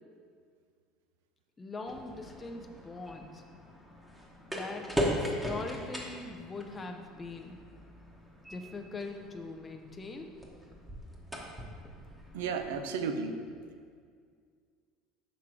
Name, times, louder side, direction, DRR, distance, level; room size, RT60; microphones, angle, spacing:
voice 1, 1.6-3.4 4.5-7.6 8.5-10.4, left 3 dB, 20° left, 3 dB, 0.4 m, -42 dB
Gas station pump and nozzle sounds, 1.9-12.8, equal, 5° right, 1.0 m, -39 dB
voice 2, 12.3-13.3, right 5 dB, 85° right, 7 dB, 0.5 m, -33 dB
5.9 x 3.6 x 4.8 m, 2.1 s
supercardioid pair, 105°, 0 cm